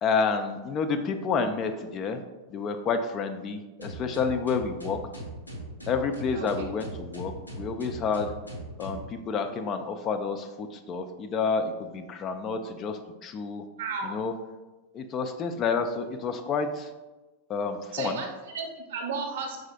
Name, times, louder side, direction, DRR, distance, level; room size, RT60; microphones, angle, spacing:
voice 1, 0.0-2.2 2.5-5.0 5.9-8.3 8.8-13.6 14.0-14.3 14.9-16.9 17.5-18.2, left 5 dB, 30° left, 7 dB, 0.3 m, -29 dB
sound 1, 3.8-9.1, right 1 dB, 90° left, 0.6 m, -39 dB
voice 2, 6.3-6.6 13.8-14.1 17.9-19.7, right 4 dB, 55° right, 2 dB, 0.8 m, -34 dB
4.8 x 4.0 x 2.2 m, 1.1 s
figure-of-eight pair, 90°, 0 cm